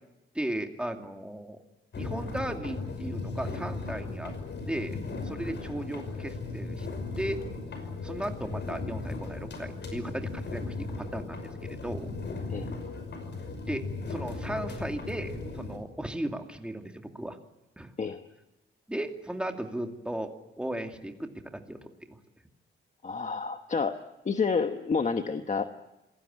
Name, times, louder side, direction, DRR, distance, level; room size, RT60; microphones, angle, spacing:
voice 1, 0.3-1.6 1.9-4.3 4.7-6.9 7.2-7.4 8.0-12.2 13.6-17.4 17.8-17.9 18.9-20.3 20.6-22.2, right 1 dB, 5° right, 4 dB, 2.4 m, -36 dB
sound 1, 1.9-15.8, left 3 dB, 55° left, 5.7 m, -37 dB
voice 2, 23.0-24.0 24.2-25.7, left 5 dB, 35° left, 7 dB, 1.2 m, -29 dB
27.0 x 19.5 x 8.7 m, 0.96 s
wide cardioid pair, 145°, 21 cm